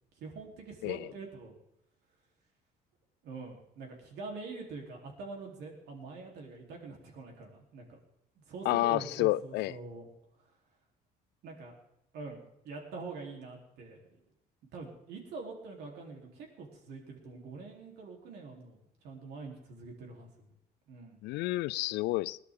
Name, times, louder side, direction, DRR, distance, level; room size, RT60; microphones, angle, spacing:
voice 1, 0.2-1.5 3.2-8.0 8.4-10.1 11.4-11.8 12.1-14.2 14.7-20.3 20.9-21.2, right 3 dB, 80° right, 3.8 m, -45 dB
voice 2, 8.7-9.8 21.2-22.4, left 18 dB, 85° left, 0.4 m, -30 dB
21.5 x 11.5 x 3.8 m
cardioid pair, 110°, 17 cm